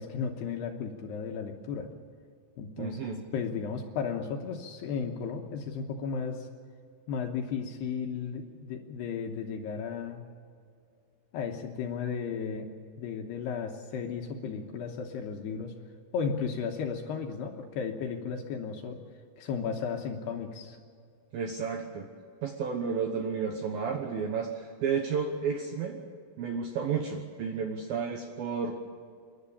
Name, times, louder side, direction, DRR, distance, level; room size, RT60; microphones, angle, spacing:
voice 1, 0.0-1.9 2.6-3.0 3.3-6.5 7.1-10.2 11.3-12.7 13.0-15.7 16.1-19.0 19.4-20.8, left 6 dB, 70° left, 3 dB, 2.8 m, -34 dB
voice 2, 2.8-3.2 21.3-22.1 22.4-26.0 26.4-28.7, right 6 dB, 70° right, 3 dB, 2.3 m, -32 dB
28.0 x 11.5 x 8.6 m, 2.3 s
omnidirectional pair, 5.7 m